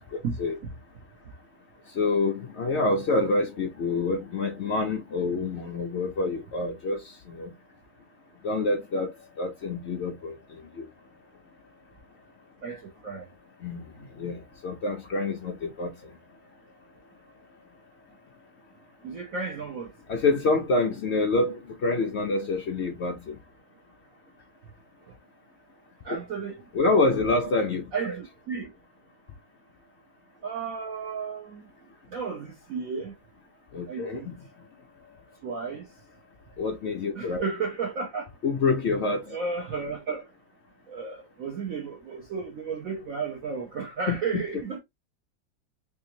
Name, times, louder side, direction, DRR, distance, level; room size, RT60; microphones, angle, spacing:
voice 1, 1.9-7.5 8.4-9.1 9.4-10.9 13.6-13.8 14.2-15.9 20.1-23.4 26.1-26.2 26.7-27.8 33.7-34.3 36.6-37.4 38.4-39.3 44.1-44.4, left 3 dB, 80° left, 0.6 m, -27 dB
voice 2, 12.6-13.3 19.0-19.9 26.0-26.5 26.8-26.9 27.9-28.7 30.4-31.7 32.1-33.1 33.9-34.3 35.4-35.8 37.1-38.3 39.2-40.3 40.9-44.8, right 5 dB, 55° right, 1.1 m, -33 dB
3.5 x 3.3 x 2.8 m
omnidirectional pair, 2.0 m